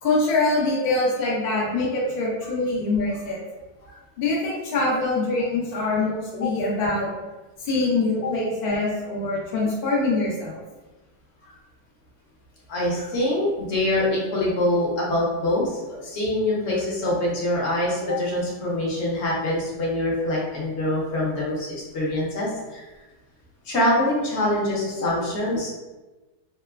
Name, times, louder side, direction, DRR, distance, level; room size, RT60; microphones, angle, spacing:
voice 1, 0.0-3.4 4.2-7.1 7.6-10.6, left 2 dB, 80° left, -5 dB, 0.5 m, -24 dB
voice 2, 12.7-22.8 23.6-25.7, left 1 dB, 55° left, -5 dB, 0.8 m, -24 dB
2.9 x 2.2 x 2.3 m, 1.2 s
omnidirectional pair, 1.7 m